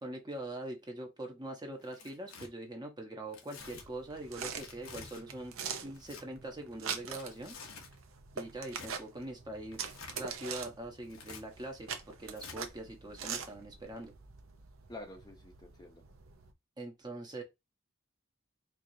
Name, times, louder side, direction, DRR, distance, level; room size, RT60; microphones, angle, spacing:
voice 1, 0.0-7.6 8.3-9.8 10.1-14.1 16.8-17.4, right 1 dB, 20° right, 0.8 m, -43 dB
Tearing, 1.8-2.5 3.3-3.9 4.6-5.2 5.9-6.2 7.1-8.0 8.7-8.9 9.7-10.2 11.0-11.4 12.4-12.6, left 4 dB, 80° left, 0.9 m, -49 dB
sound 1, 3.6-16.5, right 6 dB, 75° right, 0.7 m, -44 dB
voice 2, 14.9-16.0, left 2 dB, 20° left, 0.7 m, -48 dB
4.6 x 2.5 x 2.6 m
head